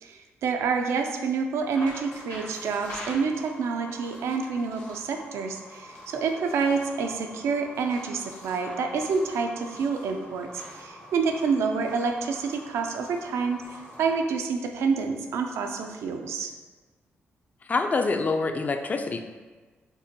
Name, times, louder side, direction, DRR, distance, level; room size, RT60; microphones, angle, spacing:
voice 1, 0.0-16.5, right 5 dB, 85° right, 4 dB, 0.4 m, -28 dB
sound 1, 1.6-14.2, equal, 75° left, 1.3 m, -44 dB
voice 2, 17.7-19.2, left 3 dB, 35° left, 6 dB, 0.3 m, -26 dB
5.3 x 2.2 x 2.8 m, 1.3 s
cardioid pair, 70°, 5 cm